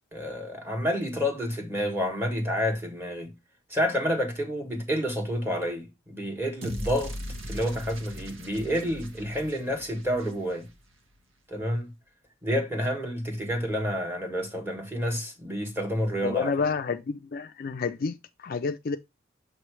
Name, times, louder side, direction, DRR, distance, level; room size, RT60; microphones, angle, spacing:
voice 1, 0.1-3.3 3.7-7.1 7.5-10.7 11.5-11.9 12.4-16.5, equal, 10° right, 1.5 m, -29 dB
sound 1, 6.6-10.8, equal, 80° right, 1.3 m, -39 dB
voice 2, 16.2-19.0, left 5 dB, 45° left, 0.4 m, -29 dB
6.6 x 3.1 x 4.7 m
head